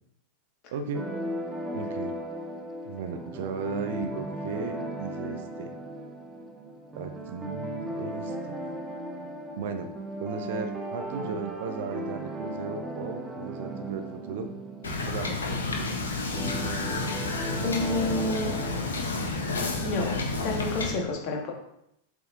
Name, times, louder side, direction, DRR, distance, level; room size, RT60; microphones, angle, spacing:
voice 1, 0.7-1.1 1.7-2.1 2.8-5.7 6.9-8.6 9.6-9.9 10.2-14.5 15.1-16.2, right 5 dB, 55° right, 7 dB, 0.9 m, -36 dB
sound 1, 0.9-18.9, right 1 dB, 25° right, 0.9 m, -37 dB
Wind / Boat Water vehicle, 14.8-20.9, left 3 dB, 70° left, 1.4 m, -30 dB
voice 2, 17.6-18.6 19.8-21.5, left 2 dB, 40° left, -1 dB, 2.0 m, -30 dB
8.2 x 4.9 x 4.0 m, 0.79 s
figure-of-eight pair, 90°, 0 cm